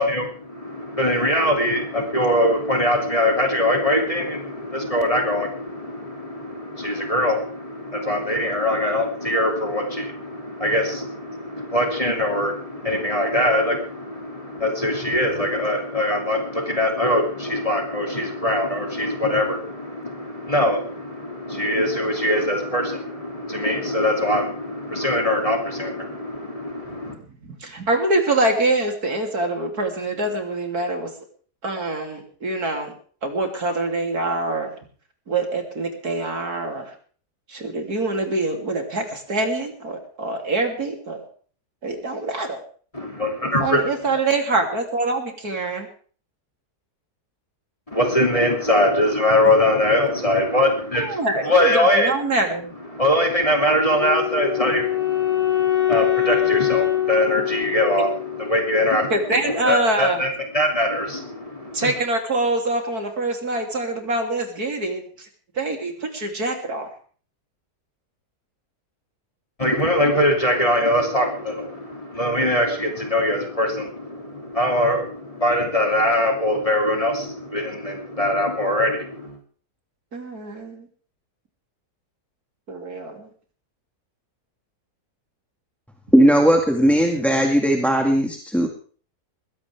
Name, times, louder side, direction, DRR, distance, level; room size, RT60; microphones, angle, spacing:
voice 1, 0.0-27.1 42.9-43.8 47.9-51.2 51.4-52.1 52.9-59.1 59.5-61.9 69.6-79.4, left 1 dB, 20° left, 1 dB, 2.9 m, -22 dB
voice 2, 27.6-31.1 31.6-32.9 33.2-34.7 35.3-36.9 37.5-41.3 41.8-42.6 43.4-45.9 50.9-52.7 59.1-60.2 61.7-65.0 65.6-66.9 80.1-80.9 82.7-83.3, right 2 dB, 70° right, 3 dB, 3.7 m, -25 dB
Wind instrument woodwind instrument, 53.9-59.0, left 12 dB, 85° left, 4.9 m, -23 dB
voice 3, 86.1-88.7, equal, ahead, 3 dB, 1.9 m, -17 dB
21.0 x 16.5 x 3.5 m, 0.43 s
omnidirectional pair, 1.7 m